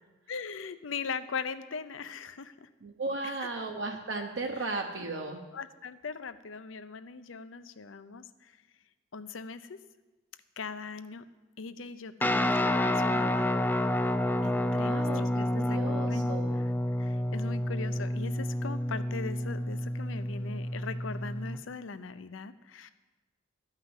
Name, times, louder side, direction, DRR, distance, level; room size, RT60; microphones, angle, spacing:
voice 1, 0.3-2.7 3.4-3.5 5.5-8.5 9.1-9.8 10.6-11.2 11.6-13.5 14.4-16.7 17.0-22.9, left 5 dB, 85° left, 12 dB, 0.6 m, -40 dB
voice 2, 2.8-5.4 14.7-15.2 15.5-16.6, right 3 dB, 70° right, 2 dB, 1.0 m, -35 dB
Guitar, 12.2-21.6, left 1 dB, 10° left, 0.4 m, -29 dB
13.5 x 5.7 x 8.1 m, 1.2 s
head